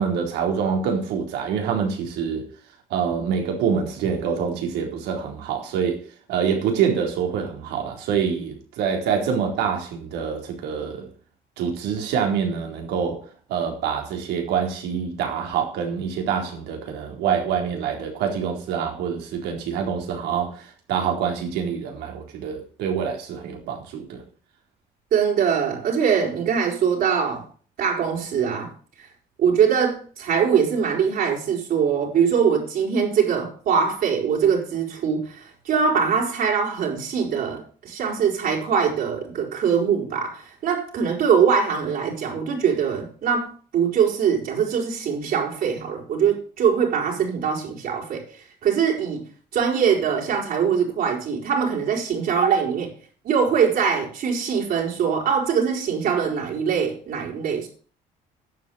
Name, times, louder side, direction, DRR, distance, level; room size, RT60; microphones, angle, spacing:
voice 1, 0.0-2.5 2.9-6.0 6.3-11.1 11.6-13.2 13.5-24.2, right 7 dB, 85° right, 4.2 m, -26 dB
voice 2, 25.1-27.5 27.8-28.7 29.0-29.1 29.4-48.3 48.6-49.2 49.5-52.9 53.2-57.7, right 7 dB, 65° right, 5.6 m, -22 dB
11.0 x 7.9 x 8.2 m
cardioid pair, 110°, 17 cm